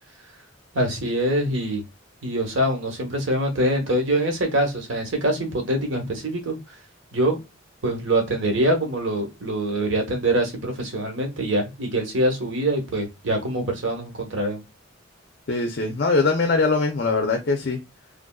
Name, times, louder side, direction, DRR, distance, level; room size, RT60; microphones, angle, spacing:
voice 1, 0.7-1.8 2.2-6.6 7.1-7.4 7.8-14.6, right 1 dB, 85° right, 3 dB, 1.0 m, -24 dB
voice 2, 15.5-17.8, left 3 dB, 55° left, 3 dB, 0.5 m, -22 dB
3.4 x 2.5 x 2.2 m, 0.23 s
head